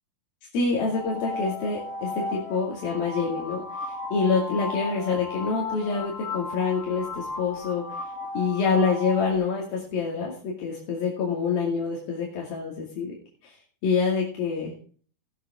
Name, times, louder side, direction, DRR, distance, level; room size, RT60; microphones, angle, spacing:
voice 1, 0.5-7.8 8.3-13.2 13.4-13.5 13.8-14.7, left 5 dB, 85° left, -3 dB, 4.3 m, -26 dB
sound 1, 0.9-9.4, left 3 dB, 50° left, 2.4 m, -35 dB
17.5 x 8.3 x 3.7 m, 0.42 s
omnidirectional pair, 4.1 m